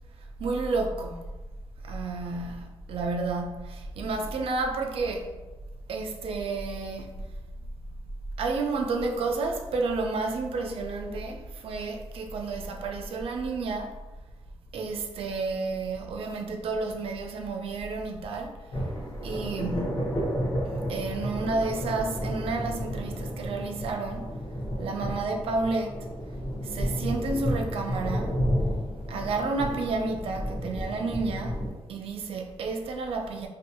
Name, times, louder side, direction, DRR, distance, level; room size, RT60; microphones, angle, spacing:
voice 1, 0.4-1.3 1.8-5.3 5.9-7.3 7.8-7.9 8.4-14.0 14.7-18.7 19.2-20.2 20.6-24.4 24.8-26.1 26.6-28.4 29.0-31.6 31.9-33.5, right 3 dB, 80° right, 0.4 m, -31 dB
sound 1, 18.7-31.7, equal, 50° left, 0.8 m, -32 dB
2.6 x 2.3 x 2.7 m
wide cardioid pair, 140°, 10 cm